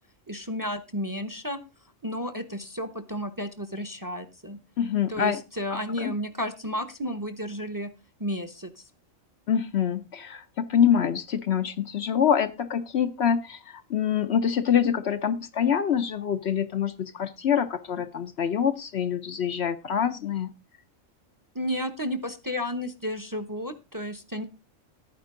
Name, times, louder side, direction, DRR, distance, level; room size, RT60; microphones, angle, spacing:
voice 1, 0.3-1.6 2.0-4.6 5.1-7.9 8.2-8.8 21.5-24.4, equal, 15° right, 11 dB, 0.9 m, -32 dB
voice 2, 4.8-5.4 5.9-6.1 9.5-20.5, left 8 dB, 60° left, 10 dB, 0.9 m, -25 dB
12.0 x 9.6 x 3.8 m, 0.27 s
omnidirectional pair, 1.4 m